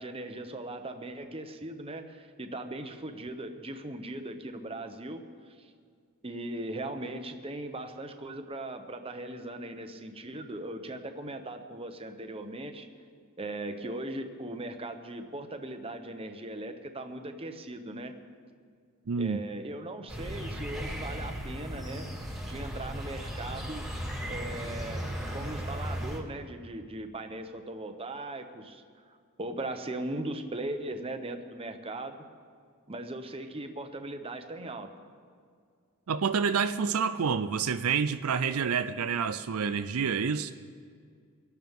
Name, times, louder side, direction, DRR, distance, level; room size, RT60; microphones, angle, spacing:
voice 1, 0.0-5.7 6.2-12.9 13.4-18.1 19.2-22.1 22.4-23.9 24.3-32.2 32.9-34.9, right 1 dB, 25° right, 0.9 m, -39 dB
voice 2, 19.1-19.4 36.1-40.5, right 6 dB, 75° right, 0.5 m, -28 dB
sound 1, 20.1-26.2, equal, ahead, 2.0 m, -36 dB
24.0 x 12.0 x 3.7 m
head